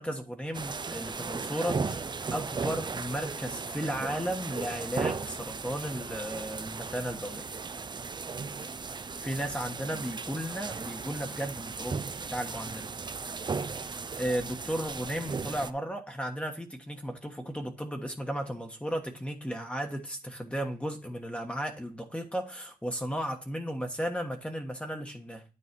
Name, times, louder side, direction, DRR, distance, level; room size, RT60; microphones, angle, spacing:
voice 1, 0.0-7.5 9.1-12.9 13.8-25.4, equal, 10° left, 3 dB, 1.3 m, -35 dB
sound 1, 0.5-15.7, right 4 dB, 30° right, 0.5 m, -36 dB
9.8 x 4.0 x 6.0 m, 0.34 s
cardioid pair, 90°, 15 cm